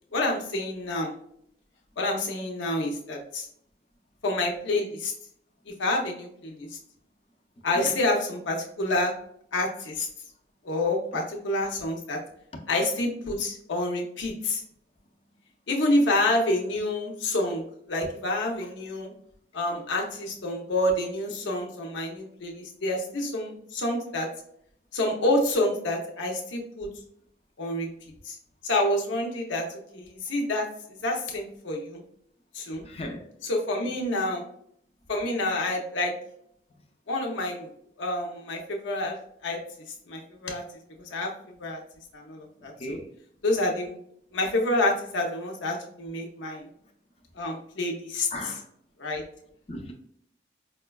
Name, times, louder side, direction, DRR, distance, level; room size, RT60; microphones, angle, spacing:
voice 1, 0.1-1.1 2.0-3.5 4.2-5.1 5.8-6.7 7.6-9.1 9.5-10.1 10.6-12.2 12.7-14.6 15.7-19.1 19.5-24.3 24.9-26.9 27.6-27.9 28.2-28.4 28.6-29.7 29.9-30.7 31.0-32.0 32.5-32.8 33.4-34.4 35.1-36.1 37.1-37.7 38.0-39.2 39.4-39.6 40.1-40.6 41.1-41.3 41.6-41.8 42.1-43.0 43.4-44.0 44.3-46.7 47.4-48.3 49.0-49.2, left 1 dB, 80° left, 0.6 m, -28 dB
voice 2, 32.8-33.3 33.8-33.9 42.8-43.1 48.3-48.7 49.7-49.9, equal, 30° left, 0.4 m, -36 dB
4.8 x 2.2 x 2.2 m
head